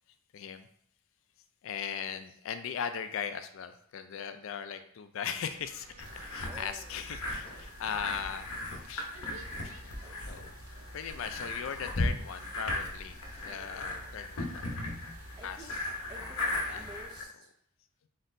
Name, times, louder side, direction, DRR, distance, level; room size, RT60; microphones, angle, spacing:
voice 1, 0.3-0.7 1.6-9.4 9.6-10.0 10.3-10.5 10.9-13.2 13.4-14.8 15.4-15.8 16.4-16.8, left 7 dB, 65° left, 9 dB, 0.4 m, -39 dB
sound 1, 5.4-15.4, right 2 dB, 75° right, 0.6 m, -56 dB
sound 2, 6.0-17.2, left 2 dB, 90° left, 0.9 m, -37 dB
voice 2, 6.5-6.9 10.0-10.5 13.5-14.1 15.4-15.8 16.1-17.5, right 2 dB, 20° right, 0 dB, 0.3 m, -51 dB
4.2 x 4.0 x 2.6 m, 0.66 s
head